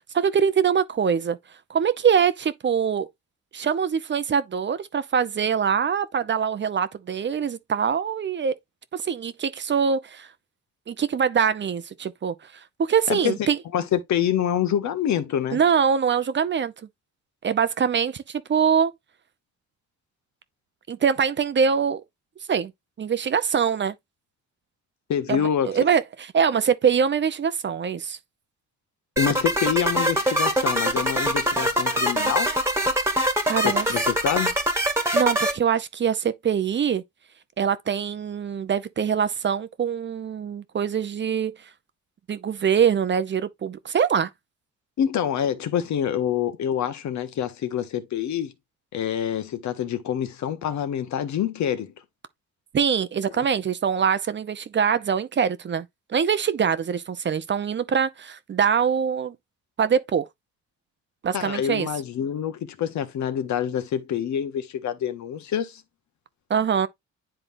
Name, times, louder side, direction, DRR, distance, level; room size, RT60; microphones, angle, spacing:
voice 1, 0.1-1.4 1.7-3.1 3.5-8.5 8.9-10.3 10.9-12.3 12.8-13.6 15.5-16.7 17.4-18.9 20.9-22.0 22.5-22.7 23.0-23.9 25.3-28.2 33.5-33.9 35.1-37.0 37.6-41.5 42.3-44.3 52.7-59.3 59.8-60.3 61.2-61.9 66.5-66.9, right 7 dB, 40° right, 0.7 m, -23 dB
voice 2, 13.1-15.6 25.1-25.8 29.2-32.5 33.6-34.5 45.0-48.5 48.9-51.9 53.4-53.5 61.3-65.8, left 9 dB, 70° left, 1.0 m, -26 dB
sound 1, 29.2-35.5, equal, 10° right, 1.5 m, -23 dB
10.0 x 3.7 x 2.6 m
cardioid pair, 90°, 30 cm